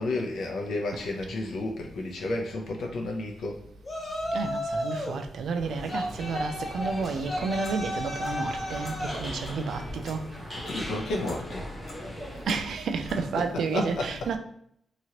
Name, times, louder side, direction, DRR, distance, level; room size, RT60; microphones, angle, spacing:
voice 1, 0.0-3.6 4.3-4.4 10.6-11.7 13.1-14.4, left 2 dB, 85° left, 0.6 m, -32 dB
Yell, 3.8-5.2 5.9-9.3, left 1 dB, 30° left, 0.6 m, -33 dB
voice 2, 4.3-10.3 12.5-14.4, right 4 dB, 85° right, 0.3 m, -31 dB
sound 1, 5.6-12.5, equal, 10° left, 1.0 m, -40 dB
Clock, 6.8-13.3, left 1 dB, 50° left, 0.9 m, -46 dB
3.0 x 2.5 x 2.8 m
wide cardioid pair, 135°, 0 cm